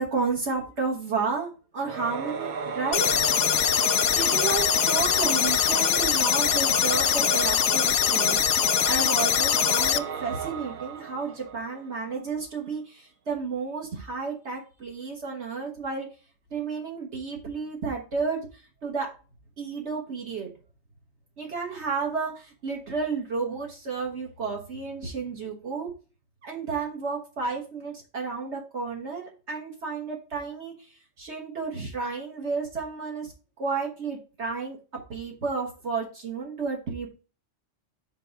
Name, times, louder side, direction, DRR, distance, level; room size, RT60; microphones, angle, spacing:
voice 1, 0.0-3.1 3.9-8.6 8.9-16.1 16.5-19.1 19.6-20.5 21.4-25.9 26.4-33.3 33.6-34.8 35.1-37.1, right 4 dB, 70° right, -1 dB, 1.6 m, -32 dB
Singing / Musical instrument, 1.8-11.9, right 6 dB, 50° right, 0.6 m, -33 dB
sound 1, 2.9-10.0, left 10 dB, 65° left, 0.8 m, -23 dB
5.2 x 4.6 x 5.8 m, 0.34 s
omnidirectional pair, 1.2 m